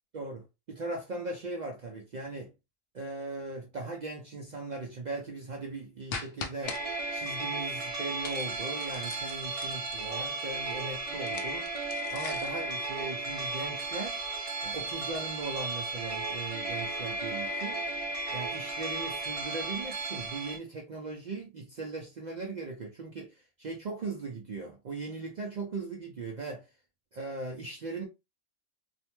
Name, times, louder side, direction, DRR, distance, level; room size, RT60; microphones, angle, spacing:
voice 1, 0.1-2.5 2.9-6.8 7.1-14.2 14.6-17.8 18.3-26.7 27.1-28.1, right 3 dB, 90° right, 0.4 m, -39 dB
sound 1, 6.1-6.8 8.2-10.1 11.2-12.6, left 5 dB, 65° left, 0.6 m, -41 dB
sound 2, 6.6-20.6, right 2 dB, 35° right, 0.6 m, -35 dB
2.6 x 2.1 x 2.9 m
omnidirectional pair, 1.3 m